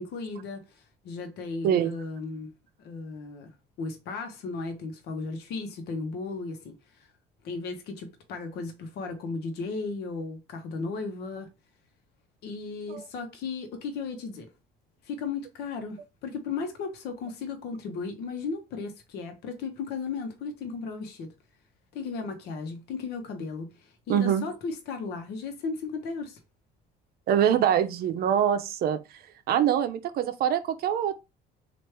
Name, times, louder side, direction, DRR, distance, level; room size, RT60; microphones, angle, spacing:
voice 1, 0.0-2.5 2.8-3.5 3.8-7.1 7.4-11.5 12.4-14.5 15.0-21.3 21.9-26.4, left 4 dB, 75° left, 0.9 m, -35 dB
voice 2, 24.1-24.4 27.3-29.0 29.5-31.1, right 9 dB, 65° right, 0.6 m, -24 dB
3.2 x 2.5 x 4.5 m
cardioid pair, 110°, 17 cm